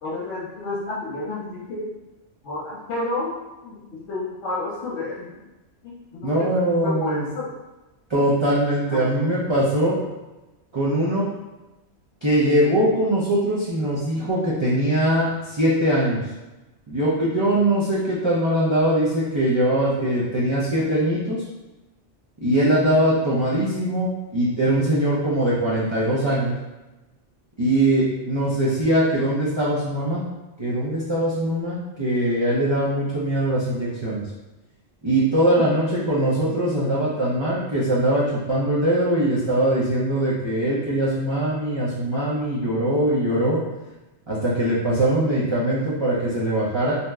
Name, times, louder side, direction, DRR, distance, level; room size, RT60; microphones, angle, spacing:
voice 1, 0.0-1.9 2.4-3.3 3.6-5.4 5.8-7.5 8.9-9.3 35.6-35.7, left 2 dB, 70° left, -6 dB, 1.0 m, -31 dB
voice 2, 6.2-7.3 8.1-10.0 10.7-11.3 12.2-16.2 16.9-21.4 22.4-26.6 27.6-30.2 30.6-34.2 35.0-43.6 44.3-47.0, right 1 dB, 45° right, -8 dB, 0.4 m, -21 dB
2.8 x 2.1 x 3.4 m, 1.1 s
omnidirectional pair, 1.2 m